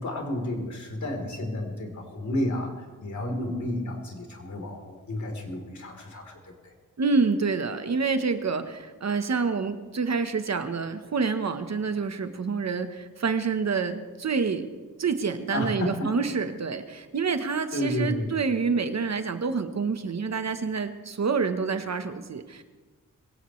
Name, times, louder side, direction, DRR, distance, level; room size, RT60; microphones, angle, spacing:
voice 1, 0.0-6.7 15.5-16.1 17.7-18.3, left 1 dB, 55° left, 2 dB, 3.7 m, -31 dB
voice 2, 7.0-14.7 15.0-22.6, right 5 dB, 50° right, 9 dB, 1.1 m, -27 dB
22.5 x 17.0 x 3.2 m, 1.4 s
wide cardioid pair, 95°, 34 cm